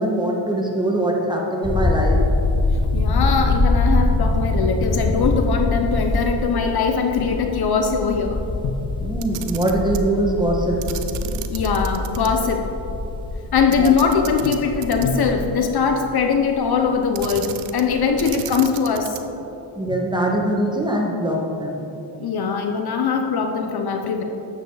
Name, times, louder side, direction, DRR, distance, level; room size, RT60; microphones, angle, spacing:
voice 1, 0.0-2.2 9.0-10.8 13.8-14.0 19.7-21.8, right 1 dB, 10° right, -1 dB, 1.6 m, -22 dB
sound 1, 1.6-17.4 17.7-18.3, left 2 dB, 10° left, 0.4 m, -24 dB
voice 2, 2.9-8.4 8.6-8.8 11.5-12.7 13.5-19.2 19.9-20.0 22.2-24.2, left 5 dB, 50° left, 4 dB, 1.0 m, -21 dB
Camera, 9.1-10.1 10.8-12.3 12.6-12.7 13.7-15.3 17.1-17.9 18.2-19.4, right 11 dB, 90° right, 0.8 m, -34 dB
12.0 x 8.2 x 4.1 m, 3.0 s
cardioid pair, 105°, 48 cm